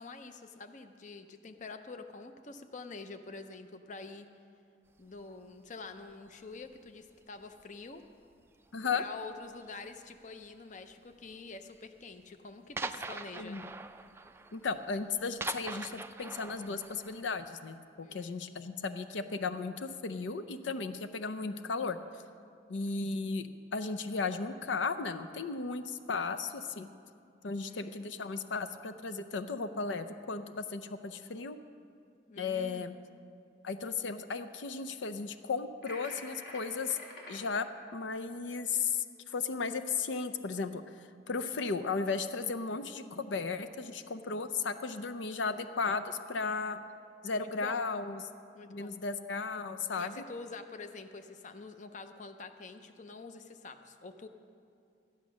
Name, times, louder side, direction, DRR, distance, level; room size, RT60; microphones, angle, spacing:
voice 1, 0.0-4.3 5.0-8.0 8.9-13.6 18.0-18.4 27.6-28.0 32.3-33.0 47.4-47.9 48.5-49.0 50.0-54.3, left 3 dB, 40° left, 8 dB, 0.6 m, -46 dB
sound 1, 5.1-5.3 6.1-6.5 6.8-7.2 7.6-7.8 8.3-8.4 8.6-8.7 9.5-10.0 10.8-10.9 11.3-11.4 11.7-11.8 12.1-12.2 12.8-17.5, right 3 dB, 15° right, 0.3 m, -42 dB
voice 2, 8.7-9.0 13.4-13.7 14.5-22.0 22.7-26.9 27.4-31.6 32.4-33.0 33.6-37.0 37.3-46.8 47.2-48.2 48.7-50.2, left 4 dB, 85° left, 10 dB, 0.6 m, -35 dB
sound 2, 35.8-37.4, left 2 dB, 60° left, 3.0 m, -46 dB
13.0 x 10.5 x 6.2 m, 2.4 s
head